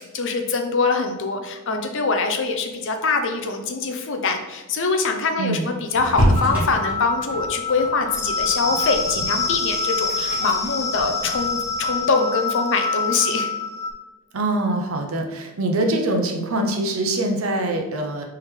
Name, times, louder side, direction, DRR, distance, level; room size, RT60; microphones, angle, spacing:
voice 1, 0.0-13.5, left 4 dB, 55° left, 5 dB, 0.6 m, -24 dB
sound 1, 5.9-12.0, equal, 5° right, 1.4 m, -28 dB
sound 2, 6.4-13.9, left 4 dB, 15° left, 0.3 m, -26 dB
voice 2, 14.3-18.3, right 1 dB, 70° right, 3 dB, 0.7 m, -24 dB
4.5 x 3.6 x 3.2 m, 1.1 s
head